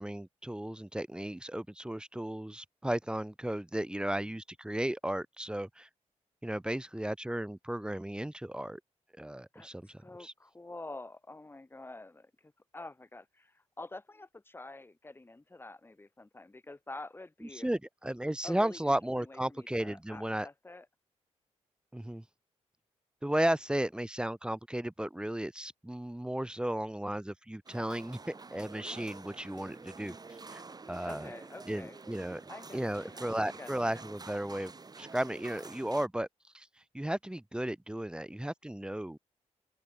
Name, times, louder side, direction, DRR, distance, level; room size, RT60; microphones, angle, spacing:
voice 1, 0.0-5.9 6.4-8.8 9.2-10.3 17.6-20.5 21.9-22.2 23.2-30.2 30.5-30.6 30.9-31.3 31.7-32.4 32.7-34.7 35.0-36.3 36.5-36.7 36.9-39.2, right 1 dB, 5° right, 1.2 m, -34 dB
voice 2, 9.5-17.7 18.4-20.9 31.0-32.0 32.5-34.1, left 2 dB, 20° left, 1.7 m, -48 dB
sound 1, 27.7-36.1, right 4 dB, 35° right, 3.1 m, -49 dB
open air
cardioid pair, 85°, 12 cm